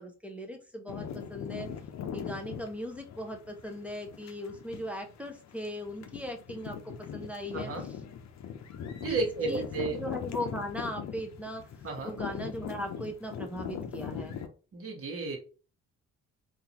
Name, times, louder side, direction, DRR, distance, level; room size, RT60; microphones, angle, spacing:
voice 1, 0.0-1.7 2.1-7.9 9.1-9.2 9.5-11.7 12.0-14.4, equal, 5° right, 2 dB, 0.7 m, -38 dB
sound 1, 0.9-14.5, left 7 dB, 65° left, 0.7 m, -40 dB
voice 2, 7.5-7.8 9.0-10.0 11.8-12.1 14.7-15.4, right 3 dB, 50° right, 2 dB, 1.4 m, -33 dB
3.8 x 2.6 x 2.9 m, 0.36 s
cardioid pair, 90°, 30 cm